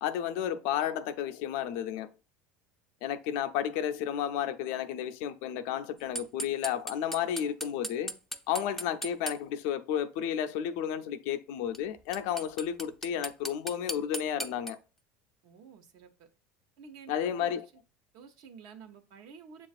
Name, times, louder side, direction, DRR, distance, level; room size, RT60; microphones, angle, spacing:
voice 1, 0.0-2.1 3.0-8.1 8.5-14.8 17.1-17.6, left 9 dB, 70° left, 0.5 m, -32 dB
sound 1, 6.2-9.4 11.7-11.8 12.1-14.7, equal, 5° left, 0.4 m, -36 dB
voice 2, 15.4-16.3 16.8-17.6 18.1-19.7, right 6 dB, 65° right, 0.8 m, -51 dB
7.1 x 2.4 x 2.4 m
hypercardioid pair, 90°, 7 cm